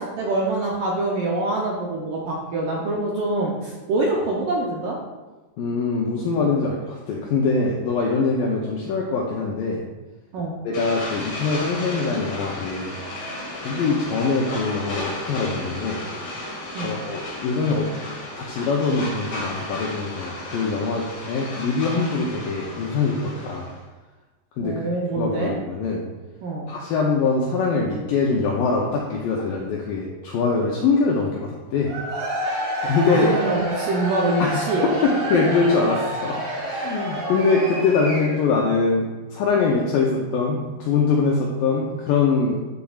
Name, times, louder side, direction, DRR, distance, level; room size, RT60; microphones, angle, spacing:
voice 1, 0.0-5.0 10.3-10.5 16.7-17.0 24.6-25.5 26.4-26.7 33.1-35.1, right 2 dB, 75° right, -3 dB, 2.0 m, -25 dB
voice 2, 5.6-9.8 10.6-12.9 13.5-16.0 16.8-23.7 24.6-24.8 25.2-26.0 26.7-31.9 32.8-33.3 34.4-34.7 35.0-42.6, left 4 dB, 85° left, -2 dB, 2.0 m, -23 dB
sound 1, 10.7-23.8, left 1 dB, 55° left, 1.3 m, -34 dB
Cheering / Crowd, 31.8-38.6, right 1 dB, 55° right, 2.5 m, -29 dB
9.8 x 6.9 x 2.4 m, 1.2 s
omnidirectional pair, 4.8 m